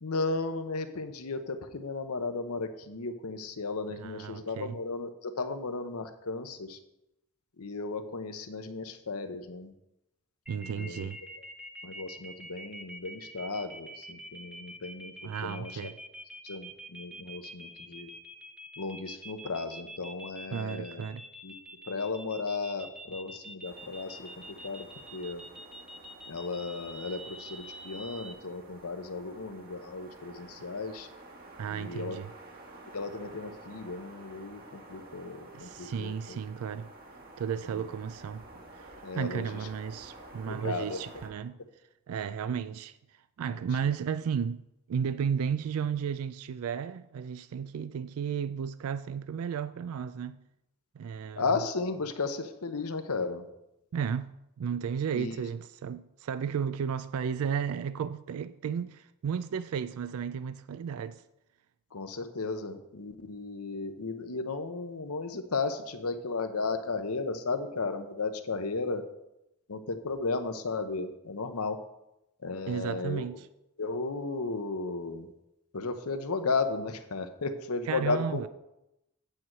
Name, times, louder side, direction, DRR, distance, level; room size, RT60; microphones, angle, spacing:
voice 1, 0.0-6.8 7.6-9.7 10.8-11.1 11.8-15.7 16.4-18.1 18.8-21.0 21.4-21.5 21.9-24.3 24.6-24.9 25.1-25.4 26.3-31.1 31.7-32.2 32.9-36.4 37.8-37.9 39.0-39.4 40.5-41.0 51.4-53.5 55.1-55.4 61.9-69.0 69.7-71.8 72.4-73.3 73.8-75.3 75.7-78.4, left 3 dB, 85° left, 0.9 m, -34 dB
voice 2, 3.9-4.8 10.5-11.2 15.2-16.0 20.5-21.2 31.6-32.3 35.5-36.9 37.4-38.4 38.7-41.6 42.1-50.4 50.9-51.6 53.9-54.3 54.6-61.2 72.7-73.5 77.8-78.5, right 7 dB, 80° right, 0.3 m, -34 dB
sound 1, 10.5-28.3, right 1 dB, 5° right, 0.6 m, -46 dB
sound 2, 23.6-41.3, right 2 dB, 45° right, 1.4 m, -51 dB
8.7 x 4.7 x 7.5 m
head